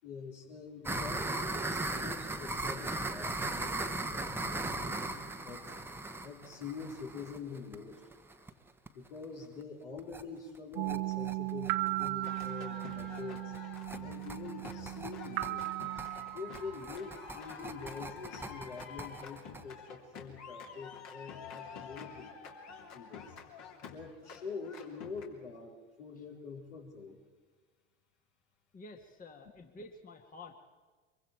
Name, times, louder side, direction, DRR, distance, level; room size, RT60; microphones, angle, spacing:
voice 1, 0.0-5.7 6.2-8.0 8.9-13.5 14.0-15.7 16.3-22.3 22.9-23.3 23.9-27.2, left 5 dB, 70° left, 0 dB, 4.2 m, -45 dB
sound 1, 0.9-8.5 8.9-9.0 9.2-9.3 9.6-9.7 10.0-10.2 10.6-19.6, right 2 dB, 5° right, 1.2 m, -38 dB
sound 2, 10.8-17.3, right 20 dB, 55° right, 1.1 m, -37 dB
sound 3, 12.2-25.3, left 6 dB, 45° left, 3.3 m, -48 dB
voice 2, 28.7-30.5, left 2 dB, 20° left, 5 dB, 1.8 m, -50 dB
24.5 x 23.5 x 4.6 m, 1.4 s
figure-of-eight pair, 75°, 37 cm